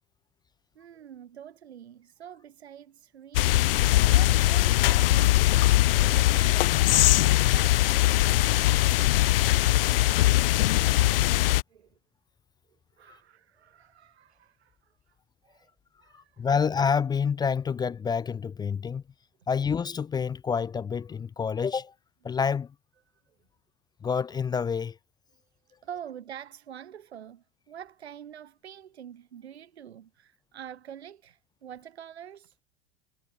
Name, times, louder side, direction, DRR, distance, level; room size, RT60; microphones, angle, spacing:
voice 1, 0.7-8.0 11.7-12.0 13.0-15.2 15.4-15.7 16.0-16.5 25.8-32.6, right 9 dB, 70° right, 1.4 m, -46 dB
sound 1, 3.3-11.6, left 16 dB, 55° left, 0.5 m, -21 dB
voice 2, 16.1-19.0 19.5-21.9 22.2-22.7 24.0-25.0, left 6 dB, 10° left, 0.5 m, -28 dB
figure-of-eight pair, 85°, 34 cm